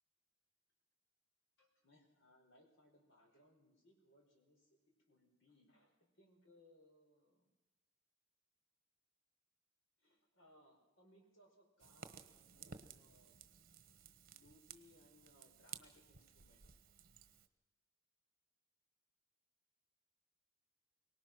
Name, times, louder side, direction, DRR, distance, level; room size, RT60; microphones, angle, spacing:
voice 1, 1.6-4.8 5.1-7.5 10.0-13.4 13.8-13.9 14.3-16.7, left 1 dB, 65° left, 2 dB, 4.9 m, -69 dB
Fire, 11.8-17.5, right 7 dB, 45° right, 1.3 m, -57 dB
24.0 x 19.0 x 6.2 m, 1.1 s
head